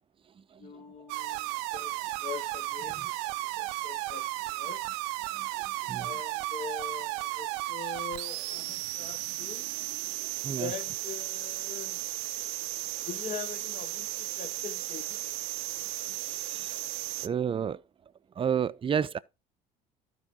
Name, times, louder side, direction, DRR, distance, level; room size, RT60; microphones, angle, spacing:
voice 1, 0.6-4.8 5.9-9.7 10.6-12.0 13.1-15.2, left 7 dB, 45° left, 0.9 m, -43 dB
sound 1, 1.1-17.3, right 18 dB, 90° right, 0.5 m, -35 dB
voice 2, 17.2-17.8 18.4-19.2, right 8 dB, 30° right, 0.5 m, -30 dB
12.5 x 4.8 x 3.7 m
supercardioid pair, 90°, 18 cm